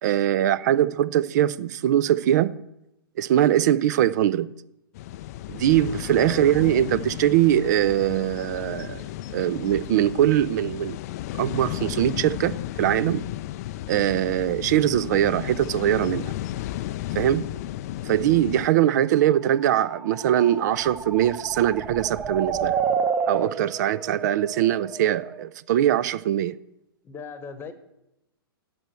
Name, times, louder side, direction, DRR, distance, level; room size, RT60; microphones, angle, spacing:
voice 1, 0.0-2.6 3.2-4.5 5.5-9.0 9.3-11.0 11.4-13.2 13.9-16.3 17.1-17.5 18.0-22.8 23.3-26.5, right 12 dB, 50° right, 0.4 m, -22 dB
sound 1, 4.9-18.7, left 14 dB, 45° left, 0.4 m, -34 dB
sound 2, 19.6-25.4, right 6 dB, 15° right, 0.7 m, -30 dB
voice 2, 27.0-27.7, left 5 dB, 20° left, 1.1 m, -39 dB
8.7 x 7.7 x 7.4 m
figure-of-eight pair, 115°, 12 cm